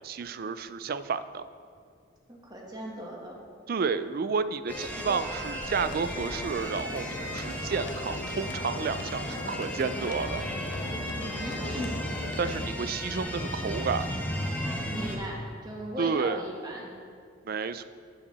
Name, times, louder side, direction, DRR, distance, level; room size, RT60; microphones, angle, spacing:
voice 1, 0.0-1.5 3.7-10.4 12.4-14.1 16.0-16.4 17.4-17.8, right 5 dB, 50° right, 13 dB, 0.4 m, -31 dB
voice 2, 2.3-3.4 11.1-11.9 14.9-16.9, equal, 20° right, -2 dB, 1.6 m, -38 dB
sound 1, 4.7-15.2, equal, 10° left, 1.0 m, -34 dB
sound 2, 5.8-12.7, left 2 dB, 60° left, 0.7 m, -41 dB
9.4 x 5.6 x 6.7 m, 2.3 s
head